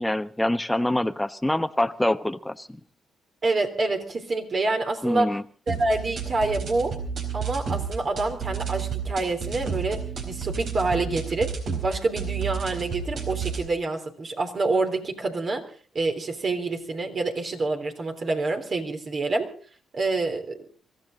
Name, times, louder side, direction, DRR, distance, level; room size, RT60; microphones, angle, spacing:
voice 1, 0.0-2.8 5.0-5.4, left 1 dB, 10° left, 12 dB, 1.1 m, -25 dB
voice 2, 3.4-5.3 5.7-7.0 7.3-15.6 16.0-19.5 19.9-20.6, right 3 dB, 45° right, 4 dB, 3.4 m, -27 dB
sound 1, 5.7-13.7, right 6 dB, 65° right, 4.3 m, -31 dB
24.0 x 15.0 x 3.9 m, 0.41 s
supercardioid pair, 65°, 0 cm